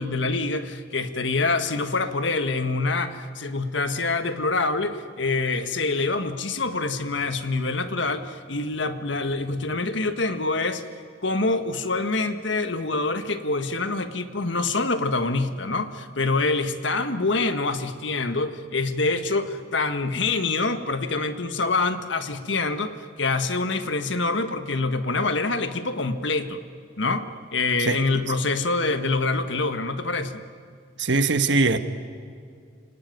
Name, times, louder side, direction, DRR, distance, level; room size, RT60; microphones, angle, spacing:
voice 1, 0.0-10.9 11.2-26.6 27.0-30.4, left 3 dB, 70° left, 9 dB, 1.5 m, -26 dB
voice 2, 31.0-31.8, right 3 dB, 65° right, 9 dB, 1.4 m, -21 dB
29.5 x 19.0 x 9.4 m, 2.3 s
head